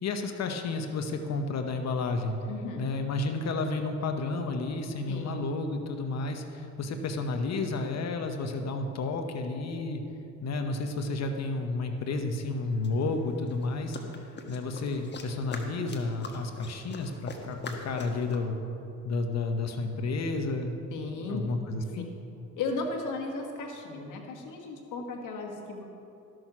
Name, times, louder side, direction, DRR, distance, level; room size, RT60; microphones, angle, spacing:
voice 1, 0.0-2.3 2.8-10.0 10.4-14.0 14.5-18.5 19.0-20.8 21.3-22.1, left 3 dB, 60° left, 5 dB, 0.9 m, -31 dB
voice 2, 2.5-2.8 5.1-5.3 14.0-14.1 20.9-21.4 22.6-25.8, left 3 dB, 85° left, 2 dB, 1.5 m, -35 dB
sound 1, 12.1-12.2 12.8-18.4, left 3 dB, 35° left, 1.4 m, -43 dB
13.5 x 6.3 x 6.0 m, 2.8 s
cardioid pair, 90°, 30 cm